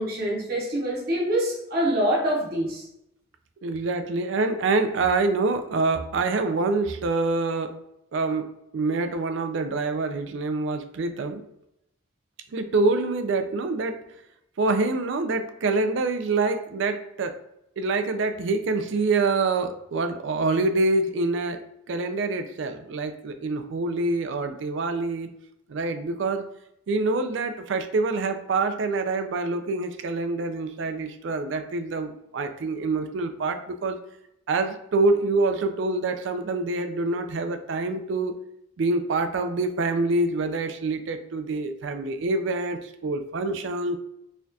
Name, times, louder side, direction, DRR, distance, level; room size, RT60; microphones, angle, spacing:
voice 1, 0.0-2.8, equal, 50° right, -4 dB, 0.8 m, -25 dB
voice 2, 3.6-7.8 8.1-11.4 12.5-14.0 14.6-17.4 17.8-25.3 25.7-26.5 26.9-34.0 34.5-38.4 38.8-44.0, right 3 dB, 65° right, 7 dB, 0.4 m, -26 dB
4.2 x 2.3 x 2.6 m, 0.81 s
head